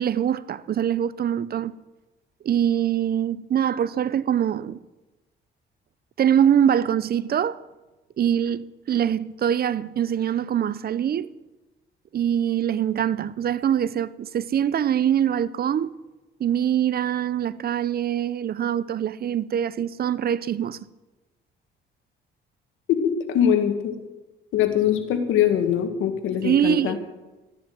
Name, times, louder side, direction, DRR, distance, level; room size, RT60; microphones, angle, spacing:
voice 1, 0.0-1.7 2.4-4.8 6.2-7.6 8.2-11.3 12.1-15.9 16.4-20.9 26.4-27.0, right 9 dB, 50° right, 0.6 m, -23 dB
voice 2, 22.9-23.9 24.5-27.0, left 9 dB, 90° left, 1.6 m, -22 dB
13.0 x 10.5 x 7.7 m
cardioid pair, 90°, 20 cm